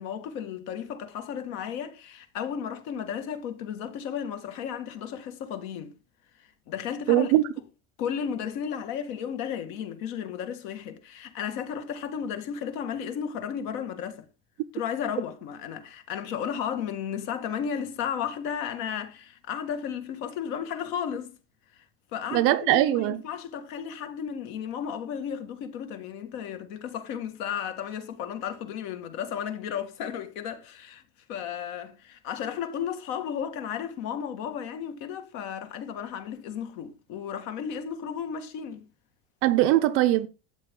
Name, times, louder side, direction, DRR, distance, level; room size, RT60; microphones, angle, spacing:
voice 1, 0.0-5.9 6.7-7.3 8.0-14.3 14.7-21.4 21.7-21.8 22.1-31.0 31.3-38.8, left 8 dB, 55° left, 1.9 m, -34 dB
voice 2, 7.1-7.4 22.3-23.2 39.4-40.3, right 15 dB, 40° right, 0.7 m, -21 dB
12.5 x 8.4 x 3.7 m
cardioid pair, 175°, 33 cm